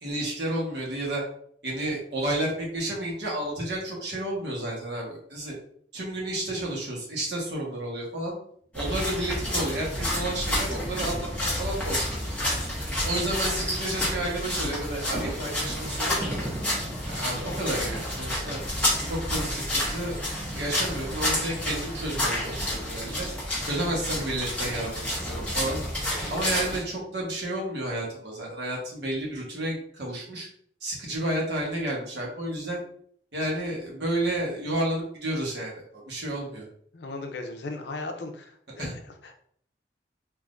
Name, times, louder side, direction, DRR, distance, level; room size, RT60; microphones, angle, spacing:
voice 1, 0.0-1.2 1.6-5.5 5.9-8.3 8.7-12.1 13.0-16.3 17.1-18.6 19.0-20.1 20.5-23.3 23.6-25.8 26.3-30.5 30.8-32.8 33.3-36.7 38.8-39.0, right 1 dB, 75° right, -3 dB, 1.1 m, -31 dB
sound 1, 8.7-26.8, left 1 dB, 5° left, 0.9 m, -30 dB
sound 2, 15.0-26.2, right 1 dB, 20° right, 0.3 m, -43 dB
voice 2, 36.9-39.3, left 2 dB, 75° left, 4 dB, 0.5 m, -37 dB
3.5 x 2.6 x 2.5 m, 0.62 s
head